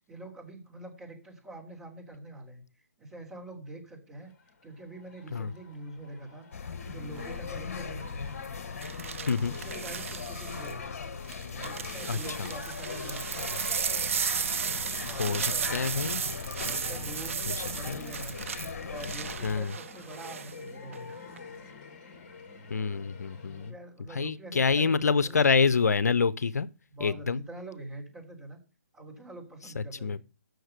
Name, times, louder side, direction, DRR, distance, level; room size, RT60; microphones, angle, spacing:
voice 1, 0.1-2.6 3.0-4.3 4.6-6.5 6.8-8.1 9.4-11.0 11.5-13.6 15.1-16.1 16.7-18.3 18.8-21.1 23.6-25.4 26.9-28.6 28.9-30.2, right 2 dB, 15° right, 3.4 m, -44 dB
sound 1, 4.2-23.7, left 4 dB, 35° left, 1.8 m, -50 dB
sound 2, 6.5-19.6, left 5 dB, 55° left, 1.3 m, -39 dB
sound 3, 7.2-7.5 8.8-10.7 11.3-20.5 20.9-21.4, right 7 dB, 55° right, 0.6 m, -35 dB
voice 2, 12.1-12.5 15.0-16.2 17.5-17.6 17.9-18.0 19.4-19.7 22.7-23.7 24.1-26.7 27.0-27.4 29.8-30.2, left 5 dB, 75° left, 0.6 m, -27 dB
7.9 x 6.5 x 6.6 m
hypercardioid pair, 150°, 9 cm